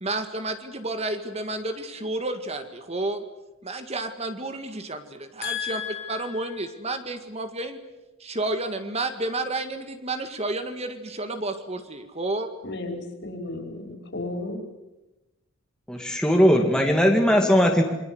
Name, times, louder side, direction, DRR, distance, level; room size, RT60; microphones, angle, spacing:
voice 1, 0.0-3.2 3.6-5.8 6.1-7.8 8.2-12.5, right 2 dB, 30° right, 8 dB, 1.9 m, -31 dB
voice 2, 5.4-6.6 12.6-14.6, left 4 dB, 55° left, 4 dB, 5.3 m, -33 dB
voice 3, 15.9-17.8, equal, 5° left, 1 dB, 2.2 m, -19 dB
27.5 x 22.5 x 8.0 m, 1.0 s
head